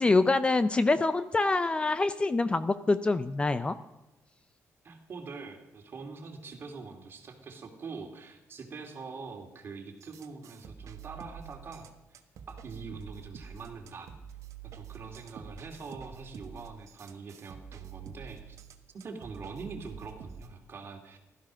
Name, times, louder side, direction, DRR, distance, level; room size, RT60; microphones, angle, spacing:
voice 1, 0.0-3.8, left 3 dB, 20° left, 12 dB, 0.5 m, -25 dB
voice 2, 4.8-12.2 12.5-14.1 14.6-18.6 18.9-21.2, right 4 dB, 40° right, 3 dB, 2.7 m, -44 dB
sound 1, 10.0-20.5, right 7 dB, 60° right, 1.4 m, -47 dB
16.0 x 13.0 x 6.3 m, 1.0 s
cardioid pair, 140°, 6 cm